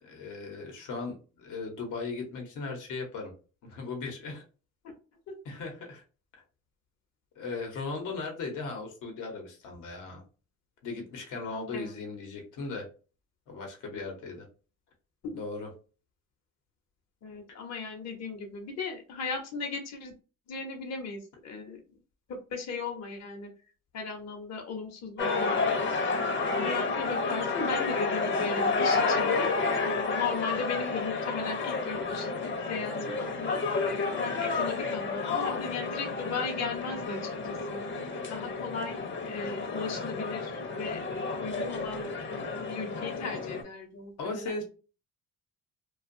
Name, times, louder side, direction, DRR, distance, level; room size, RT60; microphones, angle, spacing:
voice 1, 0.0-3.3 3.6-4.4 5.4-6.0 7.4-10.2 10.8-12.9 13.5-14.5 15.3-15.7 44.2-44.6, left 3 dB, 85° left, 2 dB, 1.0 m, -37 dB
voice 2, 17.2-20.1 20.5-21.8 22.3-23.5 23.9-25.6 26.6-29.5 29.8-32.3 32.7-37.8 38.3-41.0 41.4-42.1 42.7-44.5, left 4 dB, 60° left, 3 dB, 0.9 m, -37 dB
sound 1, 25.2-43.6, left 4 dB, 40° left, 0.7 m, -30 dB
2.5 x 2.3 x 2.6 m, 0.35 s
cardioid pair, 90°, 30 cm